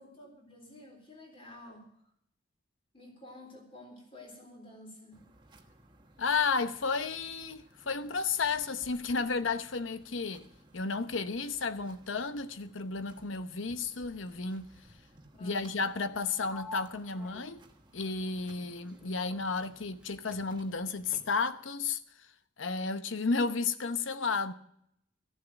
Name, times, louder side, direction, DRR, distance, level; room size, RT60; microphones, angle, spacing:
voice 1, 0.0-1.9 2.9-5.2 15.3-15.7, left 1 dB, 30° left, 3.6 m, -51 dB
sound 1, 5.1-21.1, right 1 dB, 25° right, 1.2 m, -60 dB
voice 2, 6.2-10.5 10.7-14.7 15.4-17.6 17.9-22.3 22.6-24.5, left 4 dB, 80° left, 0.8 m, -32 dB
Sliding door, 16.5-20.1 20.3-21.6, left 1 dB, 5° right, 0.9 m, -52 dB
14.0 x 7.3 x 8.8 m
head